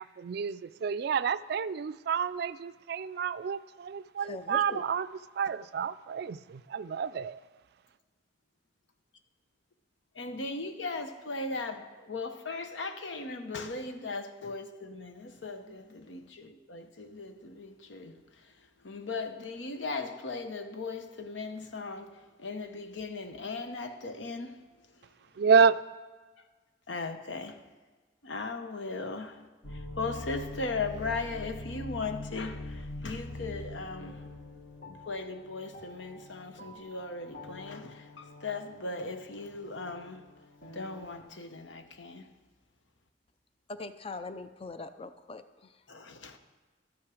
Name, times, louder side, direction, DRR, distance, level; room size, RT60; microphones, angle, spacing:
voice 1, 0.0-5.1 5.4-7.4 25.4-25.8, right 6 dB, 60° right, 0.3 m, -29 dB
voice 2, 4.2-4.8 43.7-45.8, left 3 dB, 30° left, 0.5 m, -41 dB
voice 3, 10.1-18.5 18.8-24.6 26.9-27.6 28.2-29.4 29.7-34.3 34.8-40.3 40.7-42.3 45.9-46.4, left 3 dB, 85° left, 0.9 m, -38 dB
sound 1, 29.6-41.2, left 2 dB, 60° left, 1.8 m, -44 dB
12.5 x 8.7 x 4.9 m
head